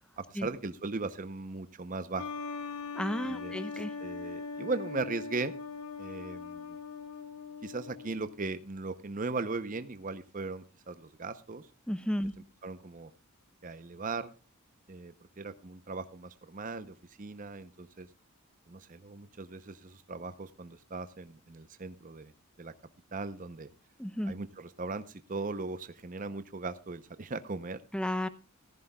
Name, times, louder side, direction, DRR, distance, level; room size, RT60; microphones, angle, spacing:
voice 1, 0.2-2.3 3.3-5.5 6.0-6.8 7.6-11.7 12.6-13.1 13.6-14.3 14.9-18.1 18.7-22.3 22.6-22.7 23.1-23.7 24.2-27.8, right 3 dB, 35° right, 11 dB, 0.6 m, -38 dB
sound 1, 2.2-8.5, left 5 dB, 80° left, 1.0 m, -41 dB
voice 2, 2.9-3.9 11.9-12.3 24.0-24.3 27.9-28.3, equal, 5° left, 12 dB, 0.6 m, -32 dB
15.0 x 14.5 x 2.3 m, 0.33 s
head